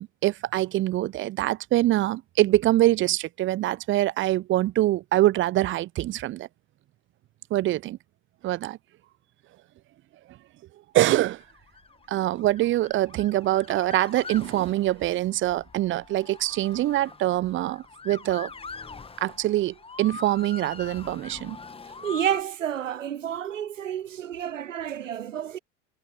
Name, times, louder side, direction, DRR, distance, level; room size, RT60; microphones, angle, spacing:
voice 1, 0.0-6.5 7.5-8.0 8.4-8.8 10.9-11.4 12.1-18.5 19.2-21.6, right 15 dB, 30° right, 0.8 m, -24 dB
Motor vehicle (road) / Siren, 11.3-22.4, left 4 dB, 15° left, 1.9 m, -43 dB
voice 2, 22.0-25.6, right 10 dB, 80° right, 0.8 m, -30 dB
figure-of-eight pair, 75°, 38 cm